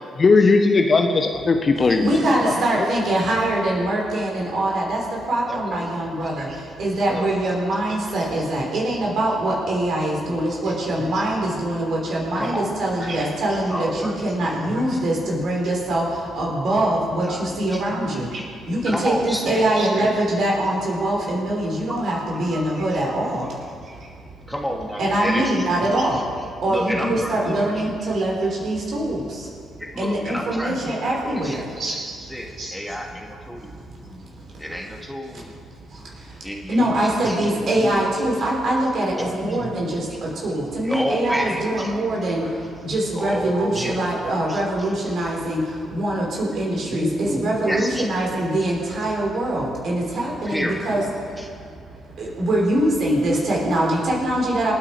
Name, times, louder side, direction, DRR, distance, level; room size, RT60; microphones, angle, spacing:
voice 1, 0.2-2.1 2.4-2.9, left 3 dB, 40° left, 6 dB, 1.3 m, -18 dB
voice 2, 1.8-24.1 25.0-32.2 32.6-32.7 33.5-34.6 35.9-54.7, right 1 dB, 55° right, -2 dB, 5.2 m, -24 dB
voice 3, 5.5-5.9 7.1-7.3 10.3-10.5 12.3-12.7 13.7-14.2 14.9-15.0 17.2-17.8 18.9-19.6 22.0-22.3 22.7-23.1 24.5-25.7 26.1-26.2 26.7-27.5 29.8-30.7 31.3-31.6 32.2-33.8 34.6-35.5 36.4-37.7 38.4-38.5 39.1-39.6 40.1-40.2 40.8-42.0 43.1-44.0 44.5-44.9 46.8-48.1 48.6-48.7 50.4-50.8 51.4-51.5, equal, ahead, 0 dB, 2.7 m, -30 dB
27.5 x 9.1 x 5.1 m, 2.3 s
figure-of-eight pair, 45°, 0 cm